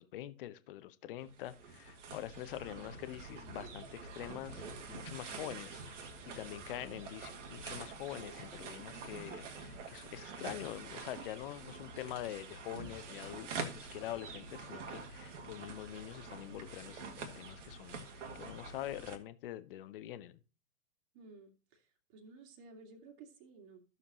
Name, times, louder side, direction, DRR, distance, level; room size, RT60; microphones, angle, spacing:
voice 1, 0.0-5.8 6.3-20.4, left 13 dB, 40° left, 0.8 m, -45 dB
sound 1, 1.2-19.2, right 4 dB, 55° right, 1.8 m, -46 dB
voice 2, 5.3-5.6 21.1-23.8, right 4 dB, 35° right, 2.1 m, -55 dB
13.5 x 6.7 x 2.9 m
figure-of-eight pair, 110°, 43 cm